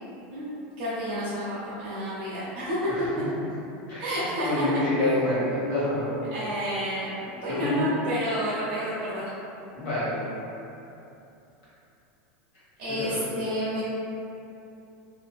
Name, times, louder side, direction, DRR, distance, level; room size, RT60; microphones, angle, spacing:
voice 1, 0.3-2.8 4.0-4.6 6.3-9.2 12.8-13.9, equal, 55° right, -11 dB, 0.7 m, -30 dB
voice 2, 3.9-6.2 7.5-8.0 9.7-10.2 13.0-13.1, left 1 dB, 40° left, -11 dB, 1.2 m, -27 dB
2.7 x 2.6 x 2.3 m, 2.8 s
supercardioid pair, 175°, 6 cm